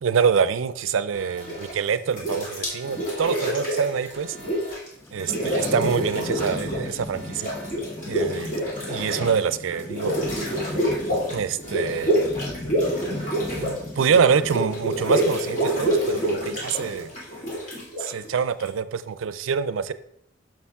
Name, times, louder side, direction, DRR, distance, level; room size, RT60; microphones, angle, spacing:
voice 1, 0.0-4.4 5.1-7.5 8.1-8.5 8.9-10.1 11.3-12.1 13.6-17.1 18.0-19.9, right 6 dB, 90° right, 15 dB, 0.4 m, -25 dB
Alarm, 1.1-1.7 2.6-3.2 4.1-4.7 5.6-6.2 7.1-7.7 8.6-9.2 10.1-10.7 11.6-12.2 13.1-13.7, right 2 dB, 85° left, 2.9 m, -45 dB
sound 1, 1.4-1.8 2.1-4.9 5.1-6.9 7.2-18.7, right 1 dB, 40° left, 2.3 m, -27 dB
Thunderstorm / Rain, 4.9-17.2, left 1 dB, 10° left, 0.4 m, -37 dB
7.0 x 6.0 x 3.5 m, 0.76 s
head